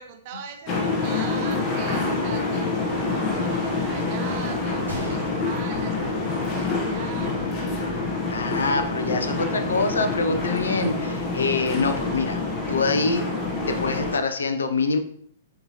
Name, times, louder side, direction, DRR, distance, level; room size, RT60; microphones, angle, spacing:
voice 1, 0.0-7.4, right 7 dB, 40° right, 4 dB, 0.7 m, -41 dB
sound 1, 0.7-14.2, left 3 dB, 30° left, 0.8 m, -27 dB
sound 2, 2.8-14.2, right 3 dB, 5° right, 0.6 m, -40 dB
Gunshot gunfire, 4.9-6.9 7.2-7.3 8.0-8.2, right 1 dB, 85° right, 1.2 m, -39 dB
voice 2, 8.3-12.4 12.7-13.2 13.7-15.0, left 3 dB, 65° left, 8 dB, 0.5 m, -25 dB
6.5 x 2.9 x 2.7 m, 0.63 s
figure-of-eight pair, 105°, 0 cm